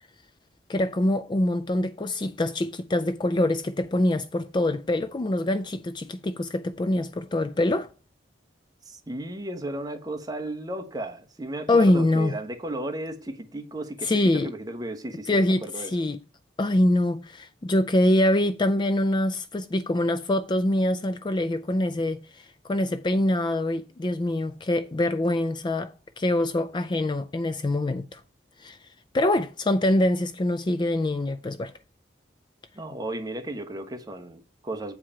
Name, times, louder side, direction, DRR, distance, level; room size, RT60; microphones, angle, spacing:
voice 1, 0.7-7.9 11.7-12.4 14.0-14.5 15.3-16.2 16.6-28.2 28.6-28.8 29.1-31.7, left 1 dB, 25° left, 0.4 m, -24 dB
voice 2, 8.9-16.0 32.7-35.0, right 1 dB, 20° right, 1.0 m, -34 dB
8.7 x 4.7 x 5.6 m
head